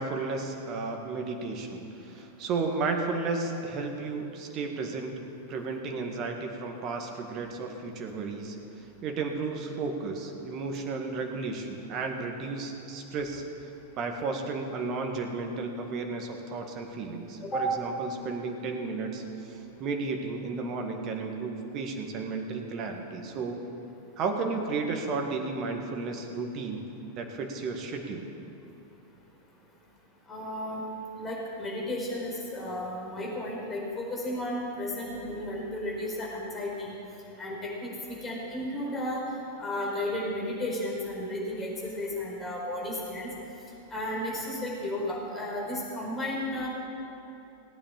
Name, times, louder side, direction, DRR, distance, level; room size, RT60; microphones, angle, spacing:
voice 1, 0.0-5.1 5.5-8.6 9.0-13.4 14.0-23.6 24.2-26.8 27.2-28.3, right 4 dB, 35° right, 4 dB, 1.8 m, -33 dB
voice 2, 30.3-30.8 31.2-37.0 37.4-39.2 39.6-43.3 43.9-46.7, left 1 dB, 20° left, -3 dB, 4.5 m, -33 dB
18.0 x 8.9 x 7.3 m, 2.9 s
figure-of-eight pair, 90°, 0 cm